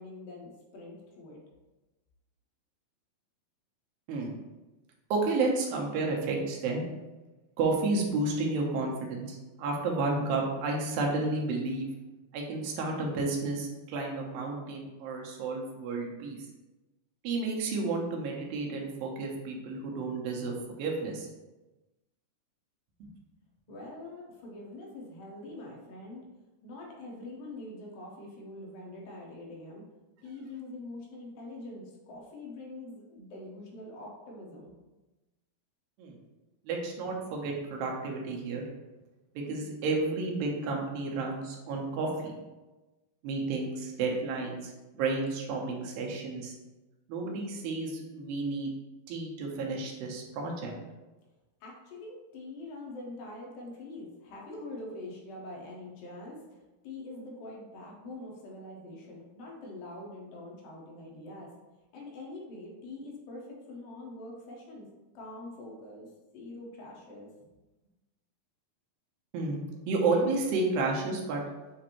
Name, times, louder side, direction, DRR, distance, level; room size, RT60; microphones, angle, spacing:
voice 1, 0.0-1.4 23.7-26.2 26.6-29.8 30.2-34.7 51.6-61.5 61.9-64.9 65.1-67.3, left 2 dB, 80° left, -2 dB, 2.6 m, -44 dB
voice 2, 5.1-6.8 7.6-11.9 12.3-16.4 17.2-21.3 23.0-23.1 36.0-36.1 36.7-38.6 39.4-42.3 43.2-46.5 47.1-48.7 49.1-50.7 69.3-71.4, right 3 dB, 85° right, 0 dB, 2.5 m, -31 dB
7.1 x 2.5 x 2.9 m, 1.1 s
omnidirectional pair, 4.1 m